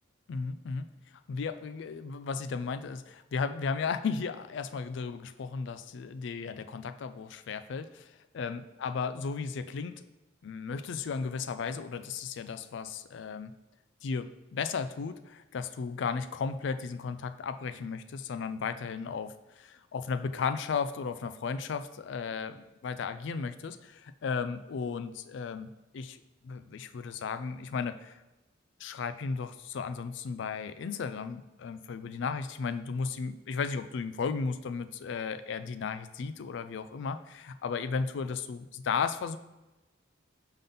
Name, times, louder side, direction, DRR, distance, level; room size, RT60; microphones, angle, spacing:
voice 1, 0.3-0.9 1.3-8.1 8.3-10.0 10.4-13.5 14.0-19.3 19.6-26.2 26.4-28.1 28.8-39.4, left 5 dB, 60° left, 11 dB, 0.3 m, -35 dB
5.3 x 3.8 x 5.5 m, 1.1 s
head